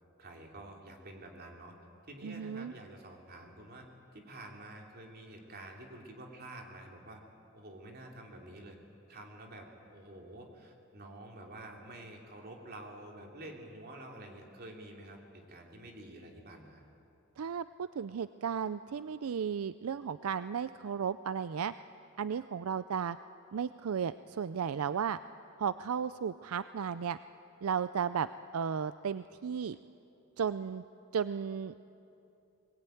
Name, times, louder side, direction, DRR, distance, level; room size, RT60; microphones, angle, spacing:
voice 1, 0.2-1.7 2.1-3.8 4.1-7.2 7.5-8.8 9.1-16.8, right 1 dB, 45° right, 1 dB, 3.1 m, -49 dB
voice 2, 2.2-2.7 17.4-21.7 22.2-23.2 23.5-25.2 25.6-27.2 27.6-28.3 28.5-29.8 30.4-30.8 31.1-31.8, right 7 dB, 80° right, 14 dB, 0.4 m, -34 dB
22.0 x 19.5 x 9.2 m, 2.8 s
head